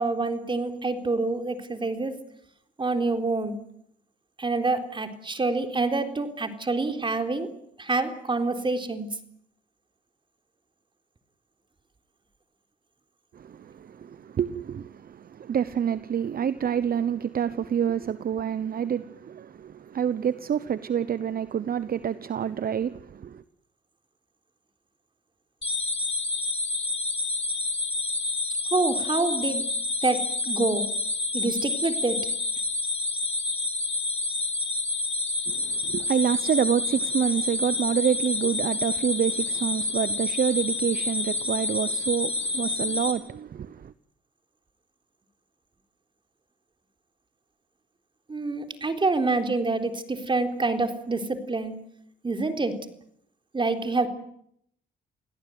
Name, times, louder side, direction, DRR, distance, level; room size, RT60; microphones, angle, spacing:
voice 1, 0.0-2.2 2.8-3.6 4.4-7.5 7.8-9.1 28.7-29.7 30.0-30.9 31.3-32.2 48.3-51.7 52.2-52.8 53.5-54.1, right 3 dB, 25° right, 3.9 m, -27 dB
voice 2, 13.3-23.4 35.5-43.9, right 8 dB, 50° right, 1.0 m, -27 dB
sound 1, 25.6-43.1, left 2 dB, 30° left, 4.1 m, -28 dB
28.5 x 17.5 x 9.5 m
cardioid pair, 90°, 20 cm